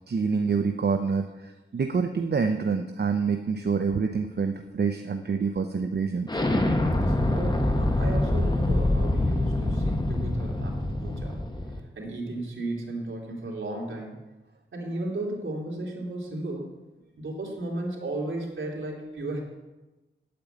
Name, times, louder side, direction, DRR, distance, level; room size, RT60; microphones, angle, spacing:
voice 1, 0.1-6.3, right 5 dB, 50° right, 6 dB, 0.8 m, -27 dB
Explosion, 6.3-11.8, left 1 dB, 20° left, 1.5 m, -25 dB
voice 2, 6.9-11.4 11.9-14.2 14.7-16.7 17.2-19.4, right 2 dB, 70° right, -2 dB, 3.3 m, -34 dB
8.7 x 8.5 x 9.3 m, 1.1 s
wide cardioid pair, 85°, 21 cm